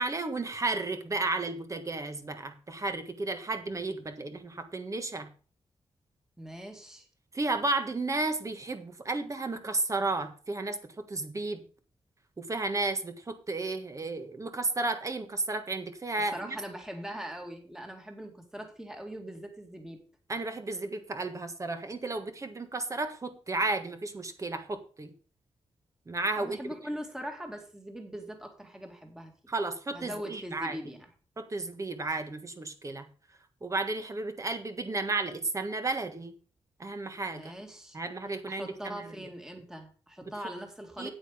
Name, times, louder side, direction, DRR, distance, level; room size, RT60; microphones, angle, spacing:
voice 1, 0.0-5.3 7.3-11.6 12.4-16.6 20.3-25.1 26.1-26.6 29.5-30.8 31.4-33.1 33.6-36.3 36.8-37.5 37.9-39.3 40.2-40.3 41.0-41.1, right 3 dB, 30° right, 7 dB, 1.5 m, -33 dB
voice 2, 6.4-7.1 16.3-20.0 26.4-29.5 29.9-31.1 37.3-38.0 38.5-41.1, equal, 5° right, 3 dB, 2.2 m, -41 dB
8.9 x 8.8 x 5.0 m, 0.38 s
wide cardioid pair, 130°, 10 cm